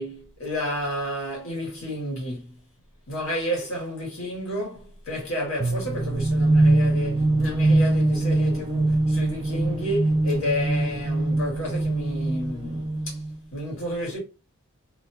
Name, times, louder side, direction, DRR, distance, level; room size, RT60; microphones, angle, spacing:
voice 1, 0.0-2.6 3.1-13.2 13.5-14.2, equal, 65° left, 1.8 m, -31 dB
sound 1, 5.6-13.4, right 2 dB, 20° right, 0.3 m, -23 dB
3.2 x 2.5 x 2.6 m
head